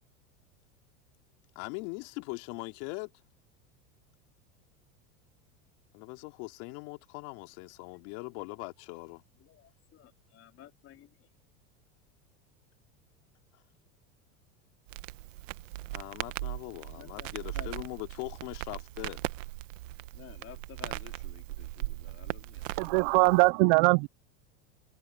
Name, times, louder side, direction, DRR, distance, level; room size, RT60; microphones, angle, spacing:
voice 1, 1.5-3.1 5.9-9.2 15.9-19.2 23.1-23.4, left 27 dB, 65° left, 2.7 m, -41 dB
voice 2, 9.4-11.3 16.9-17.9 20.1-23.8, left 12 dB, 35° left, 4.0 m, -53 dB
Crackle, 14.9-23.5, right 17 dB, 85° right, 1.1 m, -39 dB
voice 3, 22.8-24.1, right 28 dB, 55° right, 0.4 m, -22 dB
supercardioid pair, 125°, 37 cm